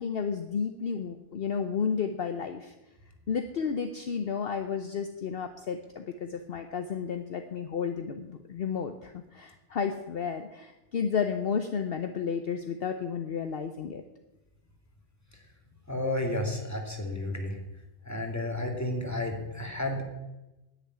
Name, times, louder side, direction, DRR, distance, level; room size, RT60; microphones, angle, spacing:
voice 1, 0.0-2.7 3.3-14.0, left 6 dB, 60° left, 7 dB, 1.0 m, -32 dB
voice 2, 15.9-17.6 18.0-20.0, left 1 dB, 15° left, 1 dB, 2.4 m, -32 dB
10.0 x 8.7 x 9.4 m, 1.0 s
omnidirectional pair, 1.2 m